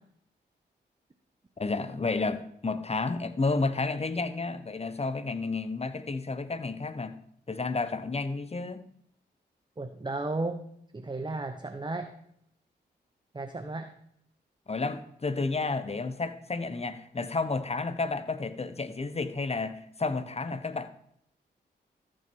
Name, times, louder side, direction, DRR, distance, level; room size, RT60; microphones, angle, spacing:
voice 1, 1.6-7.2 7.5-8.9 14.7-20.9, left 3 dB, 35° left, 12 dB, 1.0 m, -31 dB
voice 2, 9.8-10.6 10.9-12.1 13.3-13.9, right 2 dB, 25° right, 7 dB, 0.9 m, -34 dB
14.0 x 6.3 x 4.5 m, 0.71 s
supercardioid pair, 45°, 19 cm